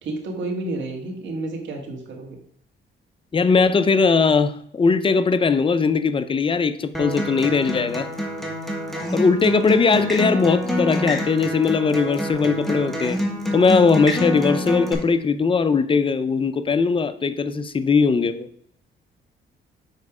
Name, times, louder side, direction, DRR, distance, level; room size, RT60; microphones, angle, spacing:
voice 1, 0.0-2.4, right 2 dB, 65° right, 1 dB, 1.8 m, -30 dB
voice 2, 3.3-8.1 9.1-13.2 13.5-18.5, left 4 dB, 25° left, 12 dB, 0.6 m, -19 dB
Acoustic guitar, 6.9-14.9, left 1 dB, ahead, 1.7 m, -27 dB
6.6 x 4.7 x 4.9 m, 0.63 s
cardioid pair, 90°, 20 cm